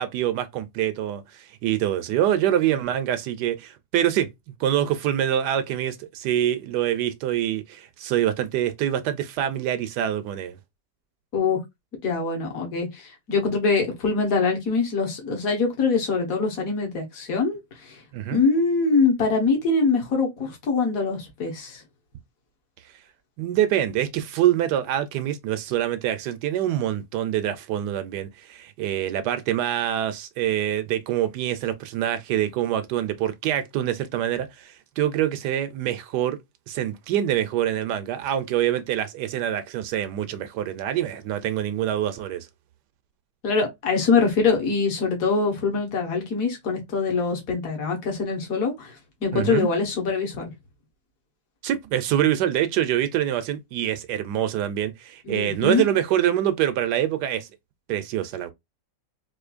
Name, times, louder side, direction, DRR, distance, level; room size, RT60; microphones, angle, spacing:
voice 1, 0.0-4.3 4.6-10.6 18.1-18.4 23.4-36.4 36.7-42.5 49.3-49.7 51.6-57.5 57.9-58.5, right 11 dB, 75° right, 1.1 m, -25 dB
voice 2, 12.0-18.0 18.3-21.8 43.4-48.9 49.2-50.5 55.3-55.8, left 4 dB, 50° left, 1.6 m, -23 dB
4.3 x 2.6 x 2.4 m
omnidirectional pair, 2.0 m